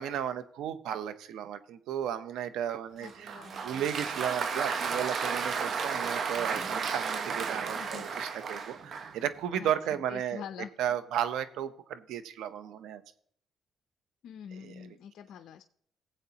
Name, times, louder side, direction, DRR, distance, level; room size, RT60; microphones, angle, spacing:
voice 1, 0.0-10.4 10.8-13.0 14.6-14.9, right 10 dB, 85° right, 12 dB, 0.7 m, -34 dB
voice 2, 3.0-3.6 7.7-8.1 9.5-10.7 14.2-15.6, left 8 dB, 70° left, 8 dB, 0.5 m, -45 dB
Applause, 3.0-9.2, right 5 dB, 50° right, 0.9 m, -33 dB
18.5 x 8.0 x 2.9 m, 0.63 s
cardioid pair, 105°, 0 cm